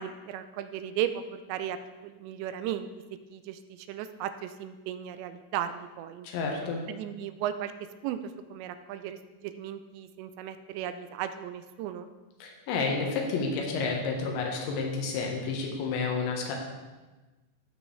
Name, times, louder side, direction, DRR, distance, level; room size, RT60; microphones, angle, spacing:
voice 1, 0.0-1.8 2.0-6.3 6.9-7.7 8.0-12.1, right 10 dB, 85° right, 10 dB, 2.7 m, -36 dB
voice 2, 6.2-6.8 12.4-16.6, left 4 dB, 85° left, 0 dB, 3.5 m, -30 dB
15.0 x 5.5 x 3.2 m, 1.2 s
omnidirectional pair, 5.1 m